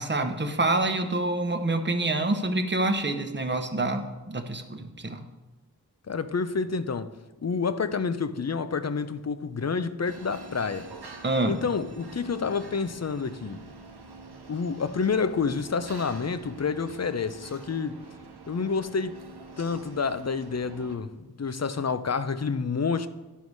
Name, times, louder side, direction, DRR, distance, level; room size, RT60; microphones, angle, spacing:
voice 1, 0.0-5.2 11.2-11.6, right 2 dB, 30° right, 0.9 m, -27 dB
voice 2, 6.1-7.1 7.4-10.9 11.4-13.6 14.5-18.0 18.5-19.1 19.6-23.1, left 5 dB, 45° left, 0.5 m, -29 dB
sound 1, 10.0-21.0, right 3 dB, 90° right, 0.9 m, -46 dB
11.0 x 4.7 x 5.3 m
wide cardioid pair, 45°, 38 cm